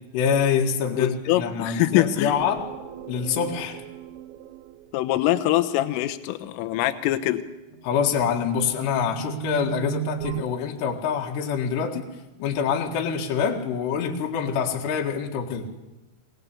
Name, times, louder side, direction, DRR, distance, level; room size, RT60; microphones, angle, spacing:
voice 1, 0.1-2.6 3.1-3.8 7.8-12.0 12.4-15.7, left 7 dB, 65° left, 0 dB, 3.8 m, -25 dB
voice 2, 1.0-2.4 4.9-7.4, left 14 dB, 80° left, 9 dB, 3.6 m, -23 dB
sound 1, 2.3-5.4 7.7-10.4, right 17 dB, 75° right, 2.9 m, -37 dB
24.0 x 20.0 x 8.4 m, 1.0 s
omnidirectional pair, 5.8 m